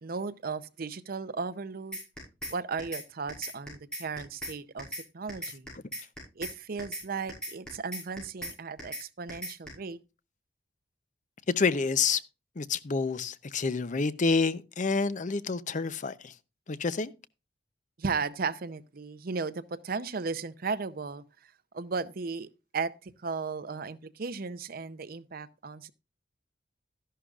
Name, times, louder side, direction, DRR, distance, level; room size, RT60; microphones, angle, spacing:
voice 1, 0.0-2.0 2.5-4.9 5.1-5.7 6.4-10.0 18.0-21.2 21.7-25.9, right 4 dB, 55° right, 0.6 m, -35 dB
sound 1, 1.9-2.5 2.8-3.0 3.3-4.5 4.8-5.0 5.3-6.5 6.8-7.0 7.3-8.5 8.8-9.0 9.3-9.7, equal, 5° left, 6.2 m, -37 dB
voice 2, 11.5-12.2 12.6-16.3 16.7-17.1, left 4 dB, 45° left, 0.6 m, -28 dB
13.0 x 11.0 x 2.4 m
head